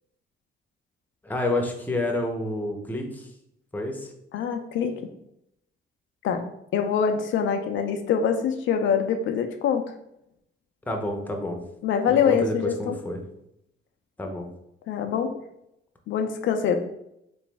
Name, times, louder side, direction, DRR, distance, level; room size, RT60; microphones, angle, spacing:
voice 1, 1.2-3.3 3.7-4.1 10.8-11.6 12.1-13.2 14.2-14.5, left 1 dB, 10° left, 2 dB, 0.7 m, -29 dB
voice 2, 4.3-5.0 6.2-9.8 11.8-13.0 14.9-15.4 16.1-16.8, left 7 dB, 70° left, 6 dB, 0.5 m, -24 dB
3.3 x 3.0 x 3.3 m, 0.79 s
cardioid pair, 90°, 20 cm